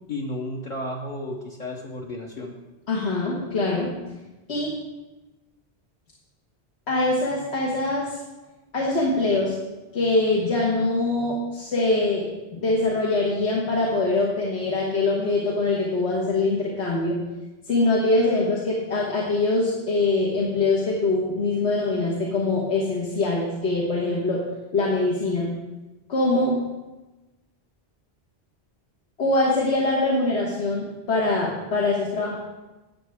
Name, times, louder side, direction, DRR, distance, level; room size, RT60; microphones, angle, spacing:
voice 1, 0.1-2.5, left 1 dB, 50° left, -1 dB, 0.9 m, -33 dB
voice 2, 2.9-3.9 4.5-4.8 6.9-8.2 8.7-9.5 9.9-12.3 12.5-17.2 17.7-24.4 24.7-25.5 26.1-26.6 29.2-32.4, left 2 dB, 85° left, -3 dB, 1.6 m, -23 dB
12.0 x 8.1 x 3.5 m, 1.1 s
omnidirectional pair, 1.1 m